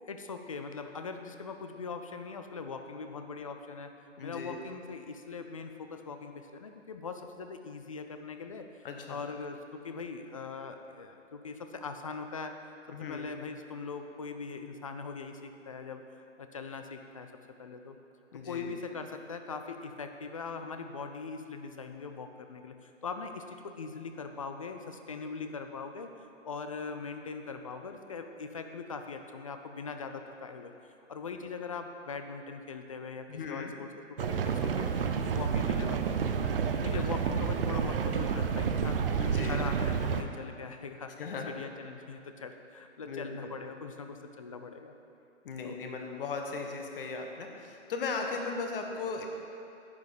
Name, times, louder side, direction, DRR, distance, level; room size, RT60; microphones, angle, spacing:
voice 1, 0.1-3.9 4.2-8.7 9.1-12.6 12.9-17.3 17.6-18.0 18.3-34.9 35.2-36.5 36.8-44.9 45.6-45.8, left 4 dB, 30° left, 6 dB, 0.4 m, -41 dB
voice 2, 4.2-4.6 8.8-9.2 12.9-13.3 18.3-18.7 33.3-33.7 36.9-37.0 39.2-39.7 41.2-41.5 43.0-43.5 45.4-49.3, left 4 dB, 45° left, 3 dB, 1.4 m, -37 dB
sound 1, 34.2-40.2, right 6 dB, 45° right, 0.7 m, -29 dB
10.5 x 8.2 x 5.2 m, 2.9 s
figure-of-eight pair, 135°, 38 cm